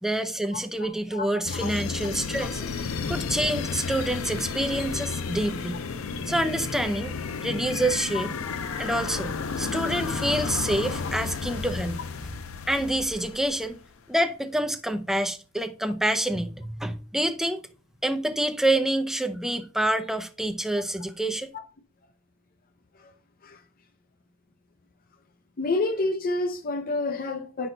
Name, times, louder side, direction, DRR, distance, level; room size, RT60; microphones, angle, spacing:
voice 1, 0.0-2.7 3.1-5.8 6.3-7.2 7.4-8.4 8.8-9.3 9.6-12.0 12.7-13.8 14.1-17.6 18.0-21.5, right 1 dB, ahead, 0.5 m, -27 dB
voice 2, 0.5-1.8 2.3-2.7 8.1-8.2 21.5-21.6 22.9-23.1 23.4-23.6 25.6-27.7, left 2 dB, 45° left, 0.5 m, -30 dB
sound 1, 1.4-13.8, left 5 dB, 90° left, 0.6 m, -32 dB
8.7 x 6.1 x 2.6 m
head